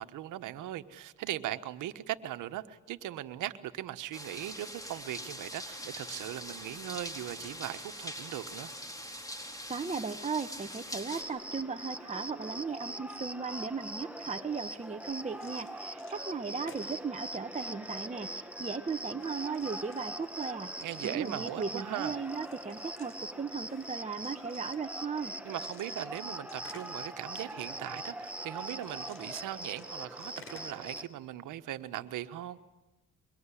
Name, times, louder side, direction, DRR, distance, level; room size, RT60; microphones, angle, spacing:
voice 1, 0.0-8.7 20.8-22.1 25.4-32.6, right 13 dB, 85° right, 10 dB, 1.4 m, -39 dB
sound 1, 4.1-11.2, equal, 10° left, 4.4 m, -43 dB
voice 2, 9.7-20.7 21.0-25.3, right 5 dB, 25° right, 6 dB, 1.3 m, -37 dB
Cricket, 11.2-31.1, right 1 dB, 5° right, 2.1 m, -42 dB
sound 2, 12.5-12.7 13.0-13.4 14.0-14.1 14.6-16.2 16.5-18.4 19.2-25.2 25.5-27.4 28.1-31.3 31.6-32.0, left 4 dB, 45° left, 5.0 m, -58 dB
24.5 x 23.5 x 10.0 m, 1.0 s
cardioid pair, 90°, 30 cm